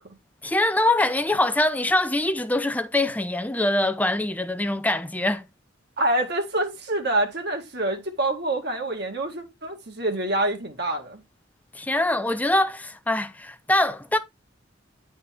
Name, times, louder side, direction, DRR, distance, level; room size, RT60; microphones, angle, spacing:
voice 1, 0.4-5.5 11.7-14.2, left 1 dB, 10° left, 0.6 m, -23 dB
voice 2, 6.0-11.2, right 1 dB, 55° right, 1.9 m, -26 dB
10.0 x 4.2 x 3.5 m
head